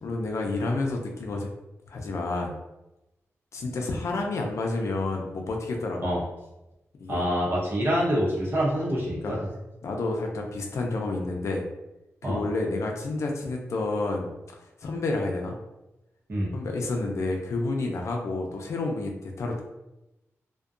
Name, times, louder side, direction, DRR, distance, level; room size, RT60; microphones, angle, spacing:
voice 1, 0.0-1.5 1.9-2.5 3.5-6.1 7.0-7.3 9.2-9.4 9.8-11.6 12.2-14.3 14.8-15.5 16.5-19.6, left 2 dB, 70° left, 1 dB, 0.5 m, -29 dB
voice 2, 7.1-9.5 12.2-12.4 16.3-16.5, equal, 45° right, -5 dB, 0.8 m, -26 dB
2.6 x 2.2 x 2.4 m, 0.95 s
wide cardioid pair, 125°, 5 cm